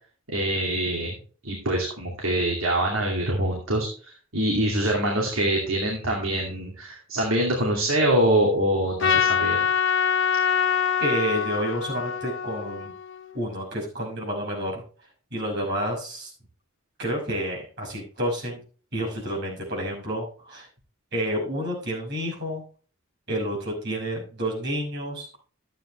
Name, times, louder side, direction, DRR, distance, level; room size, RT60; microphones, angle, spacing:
voice 1, 0.3-1.1 1.4-3.9 4.3-9.7, right 1 dB, 75° right, -1 dB, 2.5 m, -24 dB
Trumpet, 9.0-13.4, left 7 dB, 65° left, 1.0 m, -24 dB
voice 2, 11.0-12.9 13.3-14.8 15.3-16.3 17.0-18.6 18.9-20.7 21.1-22.6 23.3-25.3, equal, 55° right, -2 dB, 6.0 m, -29 dB
12.5 x 9.0 x 3.2 m, 0.41 s
head